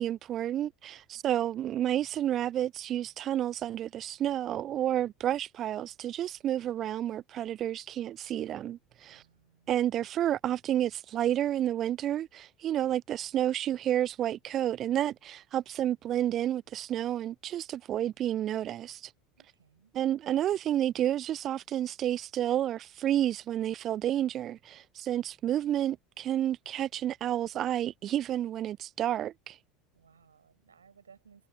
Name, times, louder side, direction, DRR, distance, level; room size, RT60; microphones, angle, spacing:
voice 1, 0.0-9.2 9.7-19.1 19.9-29.6, right 11 dB, 40° right, 0.4 m, -30 dB
voice 2, 9.1-9.8 19.4-19.9 29.9-31.5, right 6 dB, 80° right, 6.4 m, -61 dB
figure-of-eight pair, 70°, 0 cm